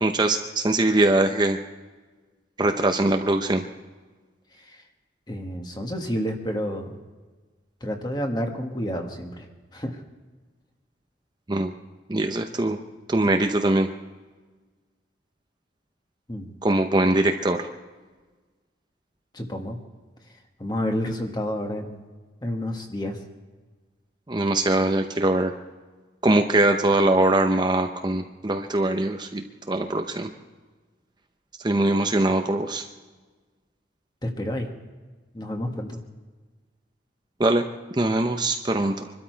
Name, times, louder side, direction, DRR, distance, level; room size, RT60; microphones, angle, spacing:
voice 1, 0.0-1.6 2.6-3.7 11.5-11.7 12.1-12.8 13.1-13.9 16.6-17.7 24.3-25.5 26.2-30.3 31.6-32.8 37.4-37.6 37.9-39.1, right 2 dB, 25° right, 5 dB, 0.7 m, -22 dB
voice 2, 5.3-6.9 7.8-9.4 9.7-10.0 16.3-16.5 19.3-19.8 20.6-22.0 22.4-23.2 34.2-34.7 35.3-36.0, equal, 20° left, 3 dB, 1.6 m, -29 dB
24.5 x 12.5 x 4.6 m, 1.3 s
head